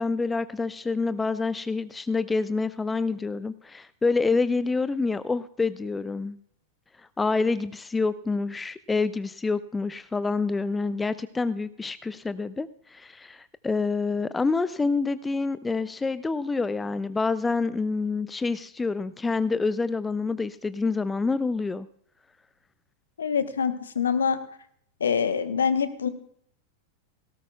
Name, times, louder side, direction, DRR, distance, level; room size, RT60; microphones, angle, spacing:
voice 1, 0.0-6.4 7.2-21.9, left 4 dB, 10° left, 15 dB, 0.4 m, -27 dB
voice 2, 23.2-24.4 25.0-26.1, left 6 dB, 70° left, 12 dB, 1.0 m, -25 dB
17.5 x 17.0 x 2.3 m, 0.66 s
figure-of-eight pair, 90°, 0 cm